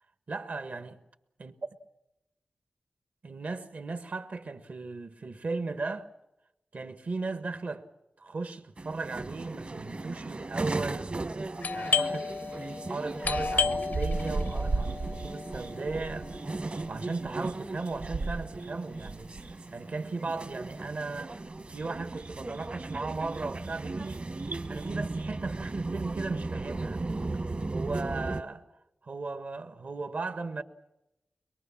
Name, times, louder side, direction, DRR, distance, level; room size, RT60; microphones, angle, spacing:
voice 1, 0.3-1.0 1.4-1.5 3.2-6.1 6.7-7.9 8.2-11.1 11.7-12.3 12.9-16.3 16.9-19.3 19.7-21.4 21.7-24.3 24.7-27.0 27.7-28.6 29.0-30.6, right 3 dB, 65° right, 1.5 m, -36 dB
sound 1, 8.8-28.4, right 2 dB, 45° right, 1.3 m, -37 dB
Doorbell, 11.6-17.1, left 5 dB, 80° left, 0.8 m, -33 dB
sound 2, 13.2-27.5 27.8-28.0, right 3 dB, 85° right, 1.0 m, -38 dB
23.5 x 22.0 x 7.2 m
wide cardioid pair, 85°, 3 cm